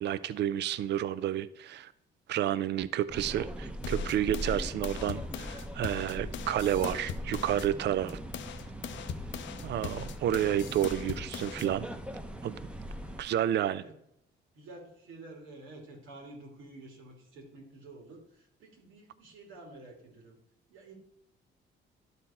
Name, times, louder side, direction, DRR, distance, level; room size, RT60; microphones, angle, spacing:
voice 1, 0.0-1.9 2.3-8.2 9.6-11.9 12.4-12.6 13.2-13.8, right 11 dB, 60° right, 16 dB, 0.4 m, -30 dB
sound 1, 3.1-13.2, equal, 5° right, 0.8 m, -40 dB
sound 2, 3.8-7.7 8.1-11.7, left 9 dB, 70° left, 0.6 m, -41 dB
voice 2, 14.5-20.4 20.7-20.9, right 2 dB, 90° right, 0 dB, 2.5 m, -50 dB
11.5 x 4.3 x 4.2 m, 0.76 s
cardioid pair, 90°, 20 cm